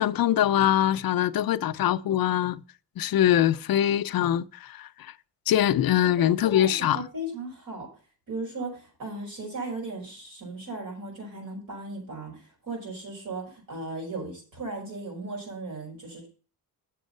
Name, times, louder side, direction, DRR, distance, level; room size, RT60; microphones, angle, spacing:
voice 1, 0.0-2.6 3.0-5.1 5.5-7.0, left 11 dB, 65° left, 0.5 m, -23 dB
voice 2, 6.5-7.9 8.3-16.3, right 2 dB, 60° right, 5.2 m, -36 dB
7.3 x 7.1 x 5.3 m
wide cardioid pair, 180°, 37 cm